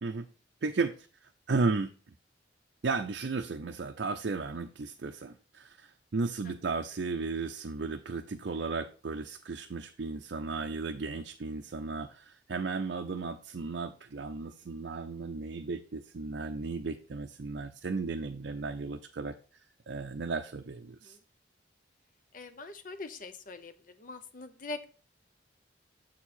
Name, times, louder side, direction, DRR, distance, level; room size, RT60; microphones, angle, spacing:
voice 1, 0.6-1.1 1.5-1.9 2.8-19.4 19.9-21.2, right 4 dB, 60° right, 4 dB, 0.5 m, -34 dB
voice 2, 22.3-24.9, left 3 dB, 45° left, 10 dB, 0.7 m, -43 dB
7.5 x 4.6 x 4.3 m, 0.36 s
head